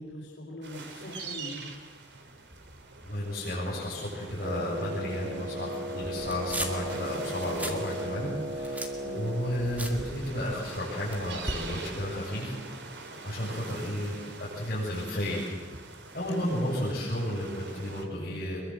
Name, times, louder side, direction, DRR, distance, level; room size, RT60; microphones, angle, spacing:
voice 1, 0.0-1.7 9.0-9.3 16.3-16.5, equal, 90° left, -4 dB, 4.7 m, -41 dB
sound 1, 0.6-18.0, right 3 dB, 70° right, 3.1 m, -44 dB
voice 2, 3.0-12.5 13.2-15.6 16.1-18.6, left 1 dB, 45° left, -9 dB, 7.3 m, -33 dB
Wind instrument woodwind instrument, 4.4-10.1, right 1 dB, 30° right, 3.3 m, -36 dB
sound 2, 6.2-6.9 7.3-7.8 8.2-10.7 11.1-11.7, right 1 dB, 10° right, 2.2 m, -37 dB
24.0 x 22.5 x 7.9 m, 1.2 s
head